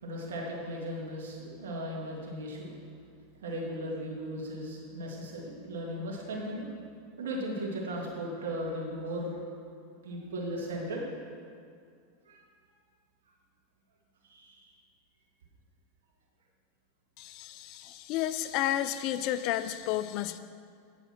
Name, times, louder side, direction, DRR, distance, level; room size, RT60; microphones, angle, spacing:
voice 1, 0.0-2.7 3.4-6.7 7.2-9.4 10.0-11.0 12.3-12.4 14.2-14.7, equal, 80° right, -2 dB, 2.0 m, -37 dB
voice 2, 17.2-20.4, left 12 dB, 55° left, 13 dB, 0.4 m, -31 dB
9.1 x 5.4 x 5.9 m, 2.2 s
hypercardioid pair, 105°, 0 cm